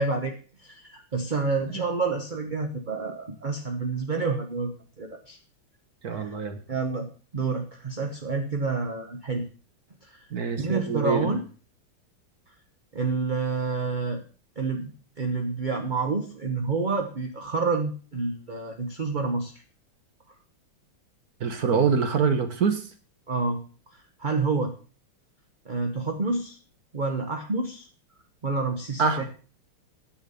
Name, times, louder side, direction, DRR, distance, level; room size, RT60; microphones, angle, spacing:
voice 1, 0.0-4.7 5.0-5.4 6.1-6.3 6.7-7.1 7.3-9.5 10.0-10.3 10.6-11.4 12.9-14.2 14.6-14.9 15.2-19.5 23.3-23.6 24.2-24.7 25.7-26.6 26.9-27.9 28.4-29.2, right 4 dB, 35° right, 4 dB, 0.8 m, -28 dB
voice 2, 6.0-6.6 10.3-11.3 21.4-22.8 29.0-29.2, right 5 dB, 50° right, 9 dB, 1.4 m, -25 dB
10.0 x 7.4 x 6.9 m, 0.38 s
omnidirectional pair, 2.4 m